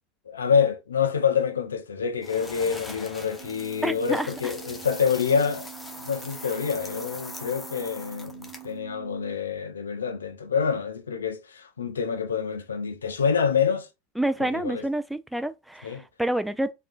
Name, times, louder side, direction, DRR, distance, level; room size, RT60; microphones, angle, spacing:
voice 1, 0.3-5.7 6.0-13.9 14.4-14.8 15.8-16.0, left 6 dB, 75° left, 0.5 m, -27 dB
sound 1, 2.2-8.8, left 2 dB, 10° left, 0.8 m, -42 dB
sound 2, 3.4-9.4, right 20 dB, 55° right, 0.8 m, -45 dB
voice 2, 3.8-4.5 14.2-16.7, right 1 dB, 5° right, 0.4 m, -28 dB
3.5 x 2.4 x 2.4 m
figure-of-eight pair, 75°, 0 cm